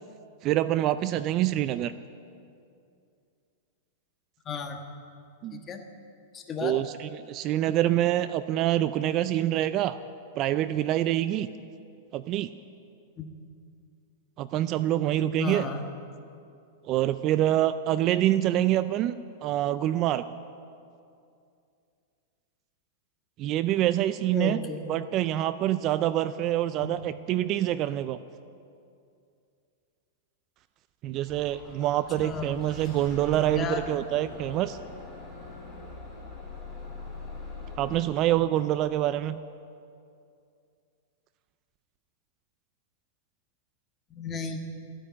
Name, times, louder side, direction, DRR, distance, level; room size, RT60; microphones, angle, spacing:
voice 1, 0.4-1.9 5.4-5.6 6.6-10.0 10.4-11.5 12.1-12.5 14.4-15.7 16.9-19.2 19.4-20.2 23.4-24.6 24.9-28.2 31.0-34.8 37.8-39.4, right 13 dB, 35° right, 14 dB, 0.4 m, -26 dB
voice 2, 4.4-4.8 5.5-5.8 6.3-6.8 13.2-13.3 15.4-15.9 24.3-24.9 26.8-27.0 32.2-32.6 33.5-33.8 34.2-34.3 44.1-44.6, left 5 dB, 20° left, 4 dB, 1.4 m, -34 dB
Bus / Engine starting, 31.2-38.0, left 3 dB, 5° right, 3.7 m, -42 dB
14.5 x 9.9 x 8.6 m, 2.5 s
supercardioid pair, 150°, 0 cm